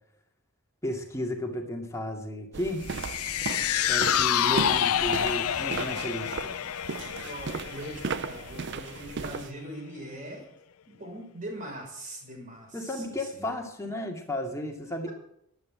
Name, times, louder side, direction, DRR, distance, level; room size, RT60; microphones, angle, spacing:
voice 1, 0.8-2.9 3.9-6.5 12.7-15.1, left 1 dB, 15° left, 1 dB, 2.4 m, -33 dB
sound 1, 2.5-9.5, right 4 dB, 50° right, 0.6 m, -36 dB
sound 2, 2.9-9.3 9.7-9.8, left 10 dB, 80° left, 0.5 m, -28 dB
voice 2, 7.2-10.5 10.9-13.5 15.0-15.1, right 1 dB, 35° right, 1 dB, 5.8 m, -41 dB
12.0 x 11.5 x 8.8 m, 0.74 s
head